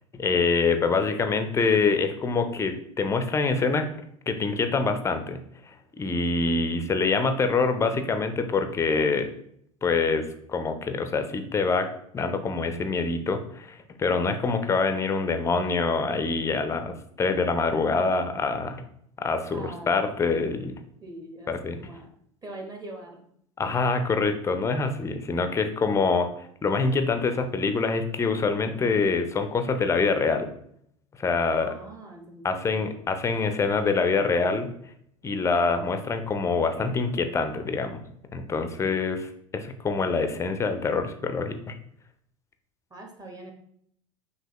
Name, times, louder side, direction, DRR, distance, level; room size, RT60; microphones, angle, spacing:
voice 1, 0.1-3.9 4.3-5.4 6.0-9.3 9.8-11.9 12.1-16.9 17.2-18.8 19.2-20.7 21.5-21.8 23.6-26.3 26.6-30.5 31.2-31.7 32.4-34.7 35.2-38.0 38.3-41.7, left 4 dB, 15° left, 7 dB, 0.5 m, -25 dB
voice 2, 19.5-20.1 21.0-22.1 22.4-23.2 31.6-32.9 42.9-43.5, right 2 dB, 20° right, 2 dB, 1.1 m, -42 dB
5.5 x 2.8 x 3.0 m, 0.69 s
figure-of-eight pair, 80°, 17 cm